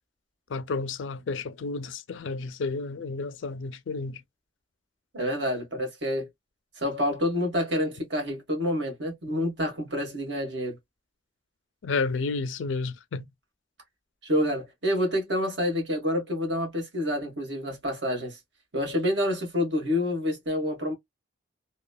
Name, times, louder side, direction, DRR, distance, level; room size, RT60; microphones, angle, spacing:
voice 1, 0.5-4.2 11.8-13.2, left 4 dB, 80° left, 0.4 m, -31 dB
voice 2, 5.1-6.3 6.8-10.8 14.2-18.4 18.7-20.9, left 1 dB, 65° right, 1.4 m, -28 dB
3.0 x 2.1 x 2.2 m
head